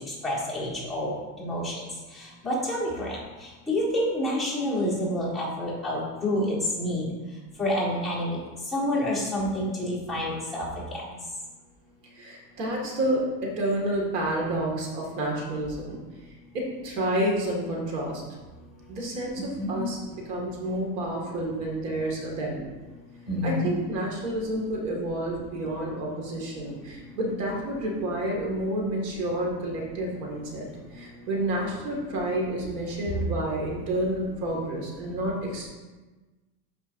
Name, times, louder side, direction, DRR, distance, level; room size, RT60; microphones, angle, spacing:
voice 1, 0.2-1.1 1.4-1.7 2.4-3.1 3.7-7.0 7.6-8.4 8.7-10.6 19.6-19.9 23.3-23.7, left 1 dB, ahead, -10 dB, 1.6 m, -28 dB
voice 2, 12.1-16.0 16.5-18.2 18.9-22.7 23.4-35.7, right 1 dB, 80° right, -1 dB, 2.1 m, -29 dB
11.5 x 5.0 x 2.6 m, 1.2 s
supercardioid pair, 170°, 47 cm